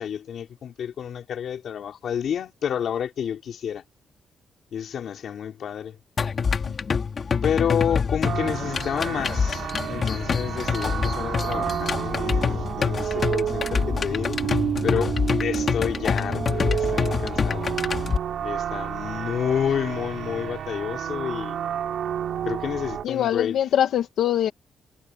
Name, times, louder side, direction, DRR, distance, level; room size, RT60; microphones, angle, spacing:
voice 1, 0.0-3.8 4.7-6.0 7.4-14.4 14.8-17.7 18.4-21.6 22.4-23.6, left 8 dB, 55° left, 3.5 m, -29 dB
sound 1, 6.2-18.2, left 5 dB, 35° left, 2.9 m, -26 dB
sound 2, 8.2-23.0, right 9 dB, 60° right, 4.8 m, -30 dB
voice 2, 23.0-24.5, left 11 dB, 80° left, 1.9 m, -23 dB
wide cardioid pair, 170°, 0 cm